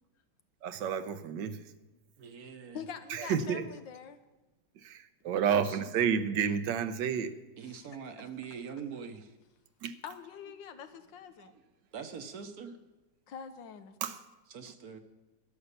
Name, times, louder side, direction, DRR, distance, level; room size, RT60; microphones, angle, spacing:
voice 1, 0.6-1.6 3.1-3.6 4.8-7.3 9.8-9.9 14.0-14.2, right 7 dB, 80° right, 11 dB, 1.4 m, -30 dB
voice 2, 2.2-2.8 5.5-5.8 7.6-9.3 11.4-11.5 11.9-12.8 14.5-15.0, right 6 dB, 60° right, 8 dB, 1.3 m, -43 dB
voice 3, 2.7-4.2 7.6-7.8 10.0-11.5 13.3-14.0, left 7 dB, 85° left, 9 dB, 1.6 m, -44 dB
12.5 x 9.2 x 6.7 m, 1.1 s
omnidirectional pair, 2.0 m